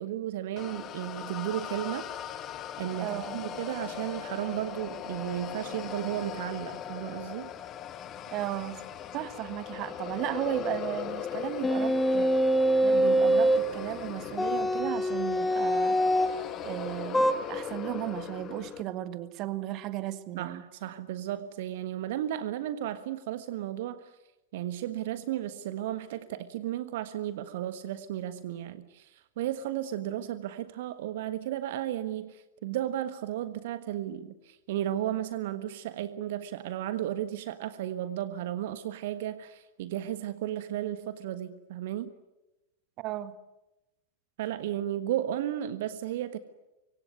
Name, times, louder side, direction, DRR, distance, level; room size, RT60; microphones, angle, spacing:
voice 1, 0.0-2.1 2.8-7.5 20.4-24.1 24.5-42.1 44.4-46.4, right 12 dB, 55° right, 12 dB, 1.4 m, -34 dB
sound 1, 0.6-18.8, left 9 dB, 30° left, 1.7 m, -39 dB
voice 2, 3.0-3.4 8.3-8.8 9.1-12.4 12.8-16.0 16.6-20.6 43.0-43.4, right 14 dB, 40° right, 13 dB, 1.6 m, -35 dB
sound 2, 11.6-13.7 14.4-16.4 17.1-17.3, equal, 5° left, 1.6 m, -24 dB
25.0 x 24.5 x 9.6 m, 0.97 s
figure-of-eight pair, 90°, 0 cm